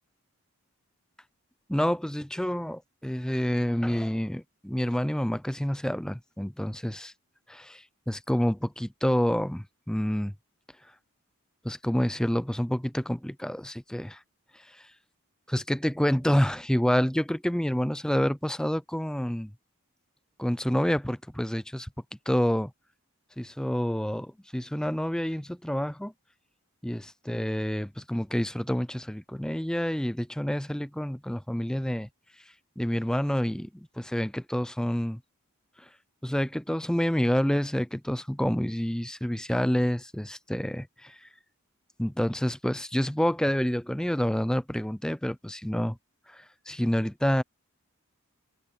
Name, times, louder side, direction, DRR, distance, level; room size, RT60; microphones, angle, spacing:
voice 1, 1.7-7.1 7.5-10.3 11.6-14.2 14.5-14.9 15.5-19.5 20.4-21.9 22.3-22.7 23.4-26.1 26.8-32.1 32.8-35.2 35.8-35.9 36.2-41.3 42.0-46.0 46.3-47.4, equal, 5° left, 0.4 m, -28 dB
head